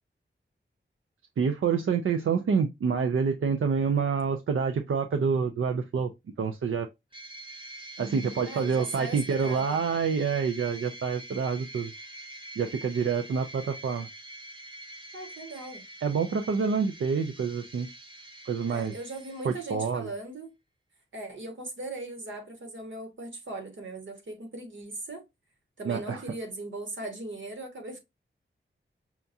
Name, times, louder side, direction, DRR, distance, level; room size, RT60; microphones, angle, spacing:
voice 1, 1.4-6.1 6.4-6.9 8.0-11.9 12.6-14.1 16.0-17.9 18.5-18.9 19.4-20.1 25.9-26.2, right 6 dB, 90° right, 0.5 m, -27 dB
sound 1, 7.1-20.0, right 1 dB, 25° right, 1.0 m, -45 dB
voice 2, 8.5-9.8 15.1-15.8 18.7-20.5 21.1-25.2 25.8-28.0, right 2 dB, 70° right, 1.4 m, -39 dB
5.7 x 2.3 x 2.6 m
wide cardioid pair, 90°, 20 cm